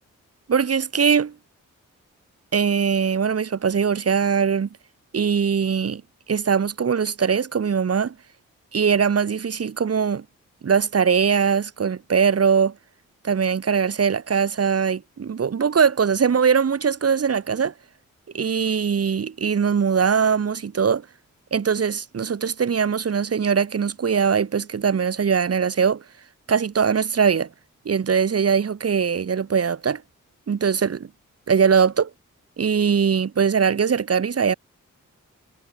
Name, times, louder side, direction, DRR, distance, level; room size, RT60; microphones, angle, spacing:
voice 1, 0.5-1.3 2.5-4.7 5.1-6.0 6.3-8.1 8.7-10.2 10.6-12.7 13.2-17.7 18.3-21.0 21.5-26.0 26.5-27.5 27.8-30.0 30.5-31.1 31.5-32.1 32.6-34.5, right 6 dB, 45° right, 1.0 m, -21 dB
cardioid pair, 45°, 33 cm